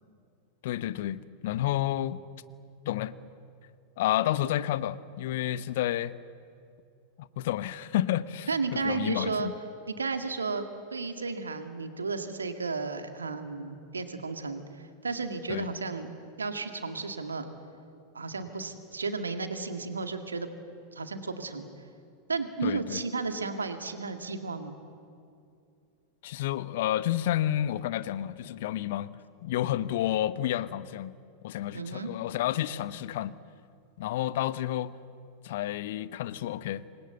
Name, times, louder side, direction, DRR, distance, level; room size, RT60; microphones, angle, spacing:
voice 1, 0.6-2.2 2.8-3.3 4.0-6.1 7.2-9.5 15.5-15.7 22.6-23.0 26.2-29.2 29.4-31.1 31.4-33.3 34.0-34.9 35.4-36.8, left 13 dB, 55° left, 0.9 m, -30 dB
voice 2, 8.5-9.5 9.9-10.6 10.9-16.1 16.4-17.5 18.1-20.5 20.9-21.7 22.3-24.7 31.7-32.1, right 4 dB, 75° right, 2.1 m, -33 dB
27.0 x 20.5 x 8.2 m
figure-of-eight pair, 90°, 0 cm